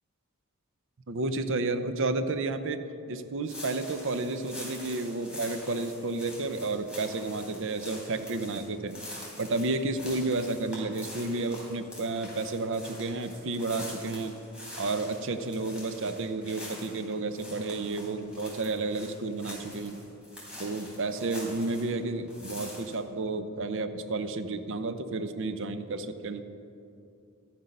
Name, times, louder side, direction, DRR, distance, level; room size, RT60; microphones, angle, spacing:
voice 1, 1.1-2.8 3.1-9.0 9.4-14.3 14.8-20.0 20.6-26.4, right 3 dB, 65° right, 10 dB, 0.7 m, -31 dB
sound 1, 3.5-22.0 22.3-22.9, left 1 dB, 5° right, 3.4 m, -45 dB
13.0 x 9.6 x 5.4 m, 2.6 s
head